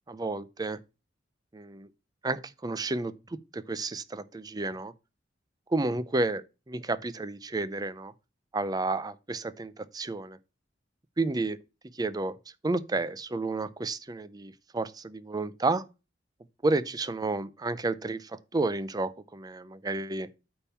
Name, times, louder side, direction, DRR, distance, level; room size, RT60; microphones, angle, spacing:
voice 1, 0.1-0.8 1.5-1.9 2.2-4.9 5.7-8.1 8.5-10.4 11.2-11.6 11.9-12.4 12.6-15.8 16.6-20.3, right 2 dB, 20° right, 0.5 m, -31 dB
8.7 x 3.6 x 6.9 m
head